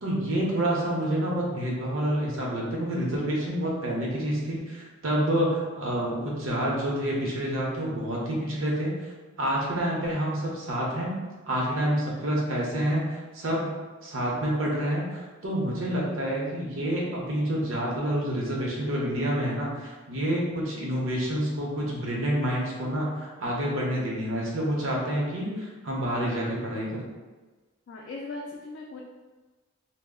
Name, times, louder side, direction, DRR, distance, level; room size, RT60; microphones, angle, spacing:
voice 1, 0.0-8.9 9.4-11.2 11.5-13.6 14.0-27.0, right 1 dB, 75° right, -3 dB, 0.7 m, -28 dB
voice 2, 27.9-29.0, left 3 dB, 65° left, -2 dB, 0.3 m, -39 dB
2.3 x 2.0 x 3.5 m, 1.3 s
head